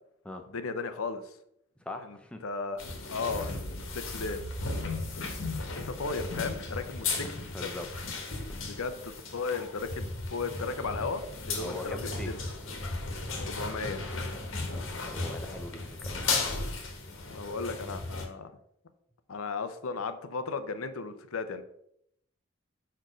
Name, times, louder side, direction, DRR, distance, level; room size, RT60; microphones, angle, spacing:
voice 1, 0.5-1.4 2.0-2.2 2.4-2.8 3.1-4.4 5.8-7.7 8.3-8.4 8.7-12.4 13.4-14.0 17.3-18.5 19.3-21.6, left 4 dB, 90° left, 10 dB, 0.7 m, -35 dB
voice 2, 1.8-2.4 7.0-7.9 8.5-8.7 11.5-12.3 14.7-16.3, left 1 dB, 5° left, 4 dB, 0.6 m, -42 dB
sound 1, 2.8-18.3, left 3 dB, 75° left, 1.4 m, -35 dB
5.2 x 4.5 x 6.1 m, 0.73 s
head